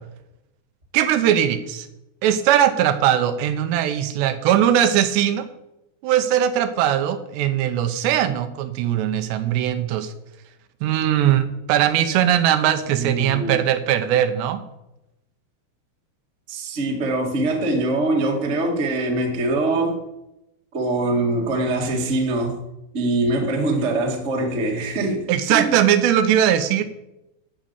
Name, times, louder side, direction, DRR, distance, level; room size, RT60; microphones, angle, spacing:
voice 1, 0.9-1.9 2.2-5.5 6.0-10.1 10.8-14.6 25.3-26.8, right 10 dB, 85° right, 9 dB, 3.1 m, -20 dB
voice 2, 12.9-13.6 16.5-20.0 20.7-22.6 22.9-25.7, right 2 dB, 50° right, 1 dB, 0.8 m, -23 dB
12.0 x 5.3 x 8.5 m, 0.88 s
omnidirectional pair, 4.8 m